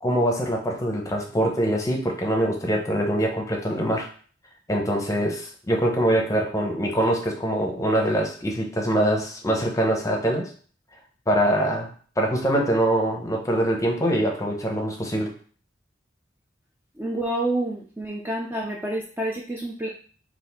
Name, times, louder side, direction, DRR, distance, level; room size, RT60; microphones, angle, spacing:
voice 1, 0.0-4.1 4.7-10.5 11.3-11.9 12.2-15.3, right 1 dB, 15° left, 1 dB, 0.7 m, -23 dB
voice 2, 17.0-19.9, right 1 dB, 10° right, -1 dB, 0.4 m, -28 dB
4.0 x 2.5 x 4.1 m, 0.44 s
head